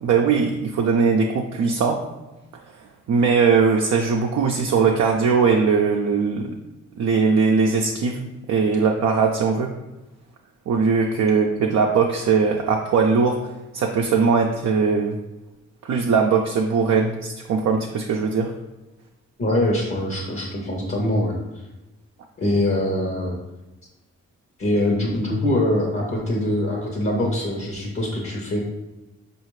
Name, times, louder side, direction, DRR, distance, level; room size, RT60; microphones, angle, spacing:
voice 1, 0.0-2.0 3.1-6.5 7.0-9.7 10.7-13.4 13.7-15.2 15.8-18.5, right 5 dB, 65° right, 1 dB, 0.5 m, -20 dB
voice 2, 19.4-21.4 22.4-23.3 24.6-28.6, left 1 dB, 50° left, -1 dB, 1.0 m, -23 dB
4.8 x 2.5 x 3.1 m, 1.0 s
supercardioid pair, 50°, 29 cm